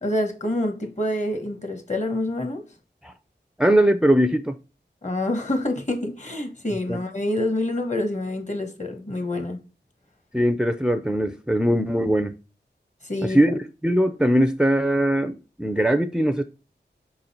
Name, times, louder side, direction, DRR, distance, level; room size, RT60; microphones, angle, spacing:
voice 1, 0.0-2.7 5.0-9.6 13.0-13.6, left 1 dB, 40° left, 1.4 m, -27 dB
voice 2, 3.6-4.5 6.9-7.0 10.3-12.4 13.2-16.4, right 1 dB, 5° right, 0.5 m, -21 dB
5.9 x 3.9 x 4.3 m
wide cardioid pair, 65°, 19 cm